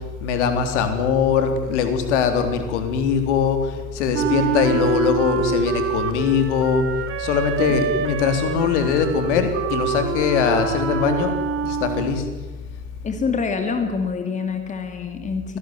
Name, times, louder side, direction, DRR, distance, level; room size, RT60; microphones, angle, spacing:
voice 1, 0.2-6.8 7.2-11.3 11.6-12.3, left 6 dB, 55° left, 7 dB, 3.9 m, -21 dB
Wind instrument woodwind instrument, 4.1-12.3, right 7 dB, 30° right, 2.5 m, -26 dB
voice 2, 13.0-15.6, left 5 dB, 15° left, 7 dB, 2.3 m, -26 dB
25.0 x 18.5 x 9.6 m, 1.2 s
figure-of-eight pair, 85°, 43 cm